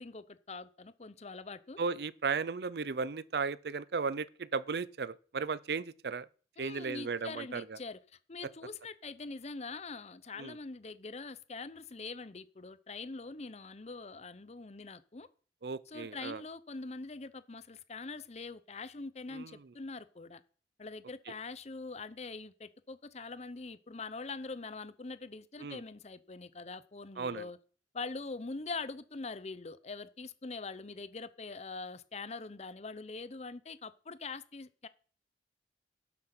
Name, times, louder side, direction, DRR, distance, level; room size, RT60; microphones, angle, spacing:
voice 1, 0.0-1.8 6.6-8.0 8.3-15.3 15.9-20.4 20.8-27.6 27.9-34.9, left 3 dB, 40° left, 0.7 m, -43 dB
voice 2, 1.8-6.3 6.6-7.8 10.4-10.6 15.6-16.4 19.3-19.6 25.6-25.8 27.2-27.5, right 5 dB, 65° right, 0.5 m, -35 dB
12.0 x 7.8 x 6.0 m
head